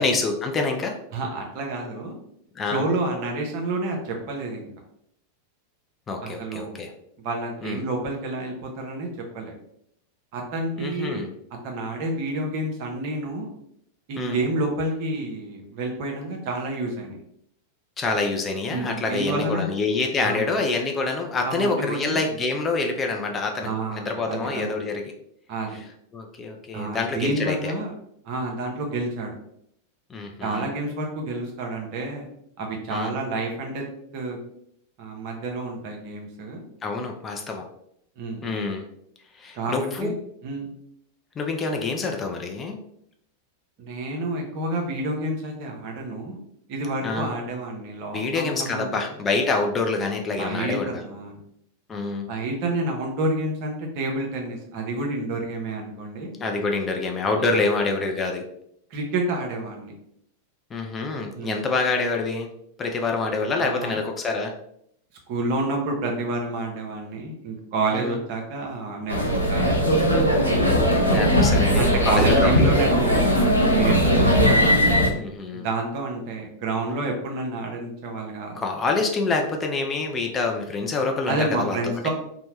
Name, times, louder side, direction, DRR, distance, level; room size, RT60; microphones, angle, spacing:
voice 1, 0.0-0.9 2.6-2.8 6.1-6.9 7.6-7.8 10.8-11.3 14.2-14.4 18.0-25.1 26.1-27.7 30.1-30.7 32.9-33.1 36.8-37.7 38.4-38.8 39.4-40.1 41.4-42.8 47.0-47.3 48.1-51.0 51.9-52.2 56.4-58.4 60.7-62.5 62.8-64.5 67.9-68.1 71.1-72.9 75.1-75.7 78.6-81.8, left 3 dB, 20° left, 2 dB, 0.4 m, -26 dB
voice 2, 1.1-2.2 2.7-4.7 6.2-6.8 7.2-9.1 9.3-9.5 10.3-11.3 11.6-13.5 14.1-17.2 18.7-19.6 20.2-20.5 21.4-22.3 23.6-24.7 25.5-25.8 26.7-27.9 28.2-29.3 30.4-32.3 32.6-33.8 34.1-34.4 35.0-36.6 38.2-38.5 39.5-40.1 40.4-40.7 43.8-46.4 46.7-49.1 50.3-51.4 52.3-56.3 57.5-57.6 58.9-59.9 61.3-61.6 63.4-64.0 65.3-70.5 71.7-74.6 75.5-78.6 81.3-82.1, right 2 dB, 45° right, 1 dB, 0.7 m, -29 dB
sound 1, 69.1-75.1, equal, 85° left, 0.5 m, -19 dB
2.8 x 2.1 x 3.0 m, 0.73 s
figure-of-eight pair, 90°, 0 cm